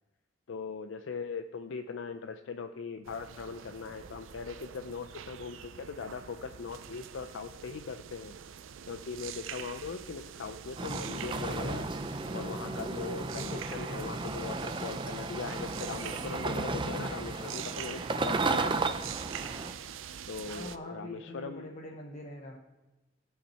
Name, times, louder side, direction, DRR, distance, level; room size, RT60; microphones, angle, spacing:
voice 1, 0.5-8.3 8.9-11.9 12.3-19.0 20.3-21.7, left 5 dB, 70° left, 7 dB, 0.4 m, -40 dB
sound 1, 3.0-20.8, right 8 dB, 90° right, 0.5 m, -45 dB
sound 2, 10.8-19.7, right 3 dB, 25° right, 0.5 m, -34 dB
voice 2, 20.4-22.6, left 1 dB, 40° left, -1 dB, 0.9 m, -44 dB
16.5 x 5.8 x 4.2 m, 1.1 s
head